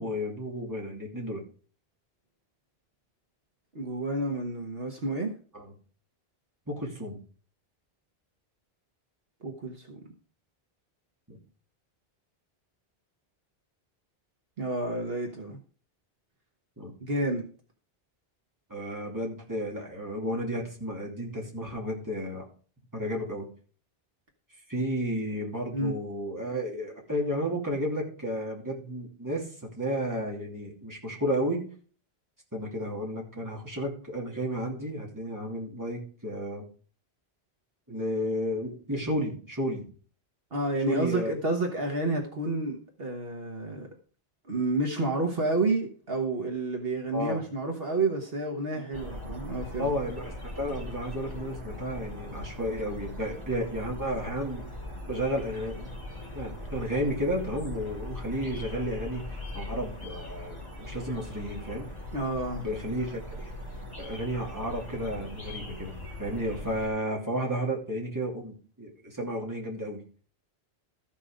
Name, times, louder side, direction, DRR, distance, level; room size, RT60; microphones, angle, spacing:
voice 1, 0.0-1.4 5.5-5.7 6.7-7.2 11.3-11.4 16.8-16.9 18.7-22.4 22.9-23.5 24.7-31.6 32.5-36.6 37.9-39.9 40.9-41.3 47.1-47.4 48.7-48.8 49.8-54.7 55.1-55.9 56.3-61.9 62.6-63.5 64.0-65.9 66.2-70.0, equal, 20° right, 2.8 m, -32 dB
voice 2, 3.7-5.3 9.4-10.0 14.6-15.6 17.0-17.4 25.7-25.9 40.5-43.9 44.5-49.9 62.1-62.7, right 2 dB, 65° right, 1.5 m, -30 dB
sound 1, 48.9-66.9, left 1 dB, 20° left, 4.4 m, -40 dB
13.5 x 6.1 x 5.0 m
omnidirectional pair, 1.0 m